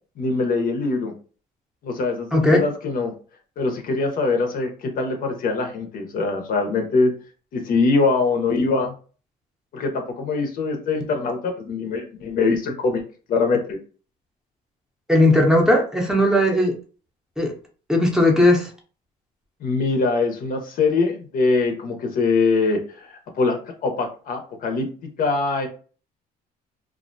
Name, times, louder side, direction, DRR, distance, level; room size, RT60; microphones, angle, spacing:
voice 1, 0.2-1.1 1.8-3.1 3.6-7.1 7.5-8.9 9.7-13.0 13.3-13.8 19.6-24.9 25.2-25.7, left 3 dB, 55° left, 4 dB, 0.6 m, -23 dB
voice 2, 2.3-2.6 15.1-16.7 17.4-17.5 17.9-18.7, left 1 dB, 5° right, -1 dB, 0.6 m, -17 dB
2.4 x 2.1 x 2.5 m, 0.39 s
cardioid pair, 110°, 17 cm